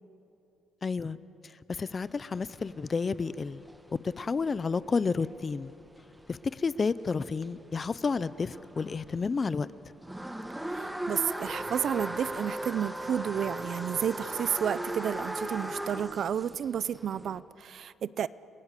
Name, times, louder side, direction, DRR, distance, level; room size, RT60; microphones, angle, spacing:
voice 1, 0.8-1.2 1.4-3.6 4.0-5.7 6.3-9.7, left 4 dB, 25° left, 17 dB, 0.5 m, -31 dB
sound 1, 2.0-9.1 9.5-17.4, right 1 dB, 5° right, 1.0 m, -38 dB
voice 2, 10.7-18.3, right 9 dB, 45° right, 18 dB, 0.5 m, -31 dB
30.0 x 20.5 x 8.2 m, 2.9 s
cardioid pair, 170°, 0 cm